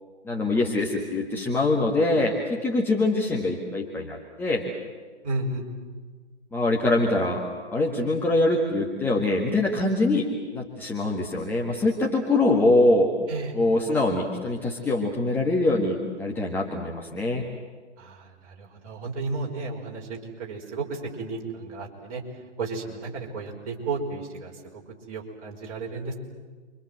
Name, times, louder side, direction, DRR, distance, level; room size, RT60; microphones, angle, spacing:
voice 1, 0.2-4.6 6.5-7.4 7.7-13.1 13.5-17.4, left 2 dB, 5° left, -2 dB, 1.6 m, -24 dB
voice 2, 5.2-5.6 13.3-13.6 18.0-22.2 22.6-24.5 25.1-26.1, right 3 dB, 30° right, -1 dB, 5.2 m, -33 dB
29.0 x 25.0 x 7.9 m, 1.5 s
figure-of-eight pair, 135°, 35 cm